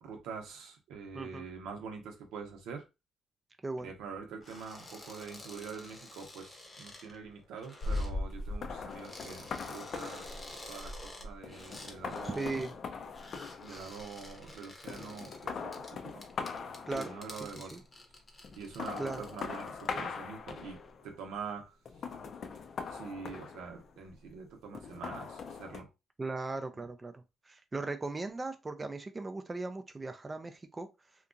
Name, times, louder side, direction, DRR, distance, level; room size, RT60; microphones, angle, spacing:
voice 1, 0.0-2.9 3.8-10.3 10.7-12.6 13.6-16.2 16.9-17.8 18.6-21.7 22.9-25.9 26.7-26.8, right 5 dB, 90° right, 0.8 m, -45 dB
voice 2, 1.1-1.5 3.6-3.9 12.2-12.7 16.9-17.2 17.7-17.8 19.0-19.2 26.2-30.9, right 3 dB, 25° right, 0.4 m, -38 dB
sound 1, 4.4-8.1 8.9-12.8 13.1-20.0 20.4-20.9, left 2 dB, 30° left, 0.8 m, -51 dB
sound 2, 7.8-14.5 14.9-17.6 18.4-21.1 21.9-24.1 24.7-25.8, left 4 dB, 55° left, 0.4 m, -40 dB
2.8 x 2.3 x 2.5 m
cardioid pair, 90°, 0 cm